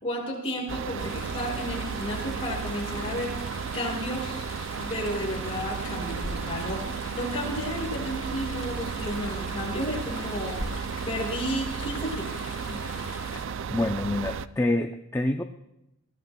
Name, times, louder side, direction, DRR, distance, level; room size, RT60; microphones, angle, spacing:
voice 1, 0.0-3.3 3.7-4.4 4.7-6.8 7.1-10.6 11.1-12.3 12.7-12.8, equal, 30° left, -4 dB, 5.9 m, -32 dB
sound 1, 0.7-14.5, right 6 dB, 60° right, 0.4 m, -34 dB
Chatter / Stream, 1.0-13.4, left 3 dB, 85° left, 2.9 m, -42 dB
voice 2, 13.4-15.4, left 1 dB, 15° left, 4 dB, 0.5 m, -27 dB
23.0 x 16.5 x 2.3 m, 0.83 s
head